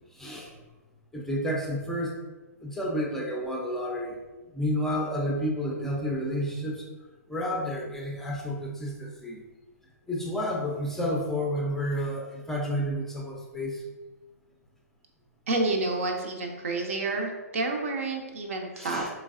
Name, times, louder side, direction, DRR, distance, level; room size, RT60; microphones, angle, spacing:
voice 1, 0.1-0.5 1.1-2.2 2.6-4.2 4.5-6.8 7.3-9.4 10.1-13.8 18.8-19.1, equal, 5° left, -2 dB, 0.5 m, -30 dB
voice 2, 15.5-19.1, right 2 dB, 55° right, 3 dB, 0.6 m, -29 dB
3.9 x 3.2 x 2.4 m, 1.2 s
figure-of-eight pair, 115°, 9 cm